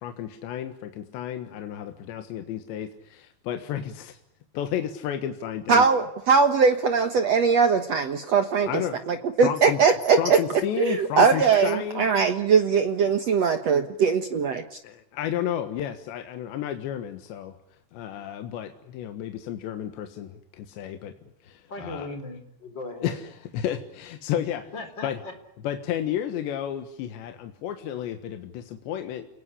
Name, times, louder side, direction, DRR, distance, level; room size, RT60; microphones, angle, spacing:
voice 1, 0.0-4.2 4.5-5.9 8.6-9.0 9.4-9.8 10.2-12.1 14.8-17.6 17.9-21.1 21.4-22.1 23.0-24.7 25.0-25.2 25.6-29.3, left 10 dB, 80° left, 7 dB, 3.7 m, -32 dB
voice 2, 5.7-8.8 9.1-10.4 10.8-14.6, right 5 dB, 75° right, 8 dB, 1.5 m, -21 dB
voice 3, 21.7-23.2 24.7-25.3, left 2 dB, 25° left, 8 dB, 4.2 m, -37 dB
29.5 x 19.5 x 10.0 m, 0.82 s
omnidirectional pair, 5.1 m